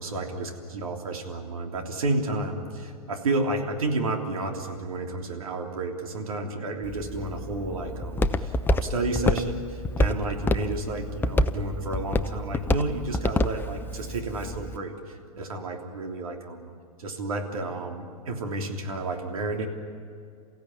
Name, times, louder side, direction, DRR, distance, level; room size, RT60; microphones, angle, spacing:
voice 1, 0.0-16.7 17.0-19.7, right 2 dB, 70° right, 2 dB, 3.2 m, -31 dB
Walk footsteps, 6.8-14.8, left 1 dB, 10° left, 0.8 m, -28 dB
28.5 x 15.5 x 9.6 m, 2.2 s
figure-of-eight pair, 105°, 19 cm